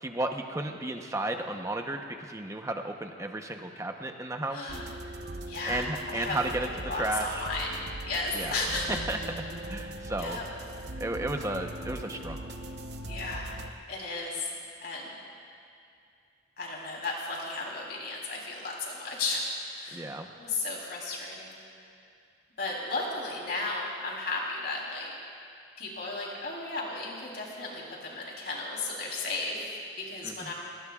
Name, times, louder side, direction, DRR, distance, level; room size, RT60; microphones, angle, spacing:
voice 1, 0.0-4.8 5.7-7.5 8.3-8.5 8.9-9.4 9.7-10.4 11.0-12.4 19.9-20.3 30.2-30.5, right 1 dB, 15° right, 4 dB, 0.9 m, -33 dB
voice 2, 4.5-4.9 5.5-9.0 10.2-10.5 13.1-13.6 13.9-14.5 14.8-15.1 16.6-19.4 19.7-20.0 20.4-21.6 22.6-25.1 25.8-30.5, left 3 dB, 55° left, -2 dB, 3.5 m, -34 dB
sound 1, 4.7-13.7, right 1 dB, 60° right, 0.9 m, -40 dB
29.5 x 18.5 x 2.4 m, 2.5 s
head